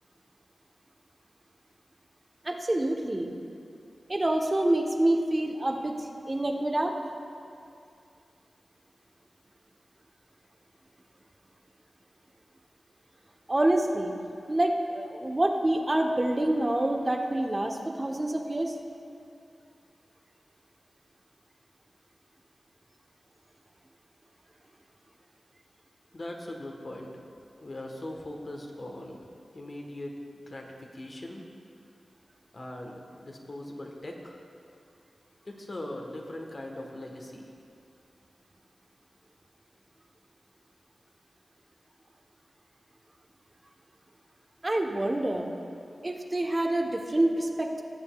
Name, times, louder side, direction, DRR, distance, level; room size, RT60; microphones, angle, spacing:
voice 1, 2.4-3.3 4.1-5.9 6.3-6.9 13.5-14.1 14.5-18.7 44.6-45.5 46.0-47.8, right 1 dB, 35° right, 2 dB, 0.9 m, -27 dB
voice 2, 26.1-27.1 27.6-29.3 29.5-31.4 32.5-34.4 35.4-37.5, left 1 dB, 50° left, 1 dB, 1.2 m, -40 dB
17.5 x 7.0 x 2.3 m, 2.5 s
cardioid pair, 40°, 0 cm